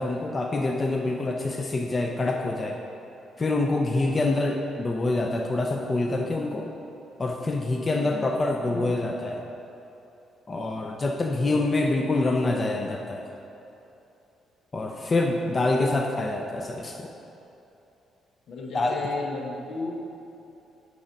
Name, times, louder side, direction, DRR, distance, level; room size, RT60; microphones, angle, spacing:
voice 1, 0.0-2.8 3.4-6.7 7.2-9.4 10.5-13.2 14.7-17.1 18.7-18.9, left 2 dB, 30° left, 2 dB, 0.6 m, -26 dB
voice 2, 4.0-4.5 7.9-8.3 8.6-8.9 11.4-11.6 18.5-19.9, left 3 dB, 75° left, 0 dB, 1.0 m, -36 dB
6.9 x 4.8 x 5.2 m, 2.9 s
cardioid pair, 90°, 0 cm